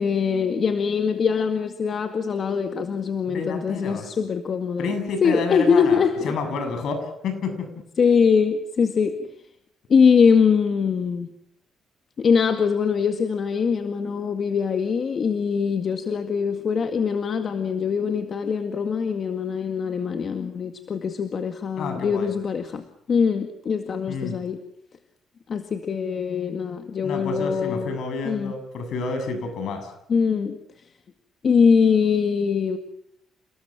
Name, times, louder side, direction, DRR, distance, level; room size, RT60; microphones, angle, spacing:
voice 1, 0.0-4.9 5.2-6.3 8.0-9.3 9.9-11.3 12.2-24.6 25.5-28.0 28.3-28.5 30.1-30.6 31.4-32.8, left 6 dB, 50° left, 6 dB, 2.0 m, -22 dB
voice 2, 3.3-4.1 4.8-7.7 21.8-22.3 24.1-24.4 27.0-29.9, left 4 dB, 70° left, 7 dB, 7.4 m, -30 dB
29.5 x 19.0 x 7.4 m, 0.75 s
cardioid pair, 90°, 0 cm